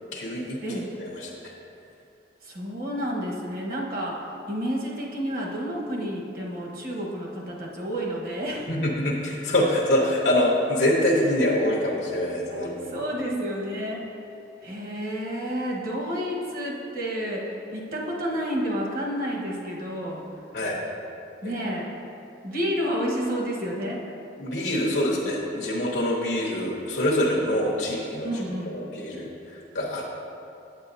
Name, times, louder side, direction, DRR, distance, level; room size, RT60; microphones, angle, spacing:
voice 1, 0.1-1.3 8.7-13.0 20.5-20.8 21.4-21.5 24.4-28.4 28.7-29.3 29.7-30.1, left 1 dB, 80° left, -3 dB, 1.0 m, -25 dB
voice 2, 0.6-0.9 2.4-4.2 4.5-8.7 12.5-14.3 14.6-20.2 21.4-21.9 22.4-24.0 28.2-28.7, equal, 55° right, -3 dB, 1.2 m, -30 dB
8.8 x 8.1 x 2.7 m, 2.7 s
head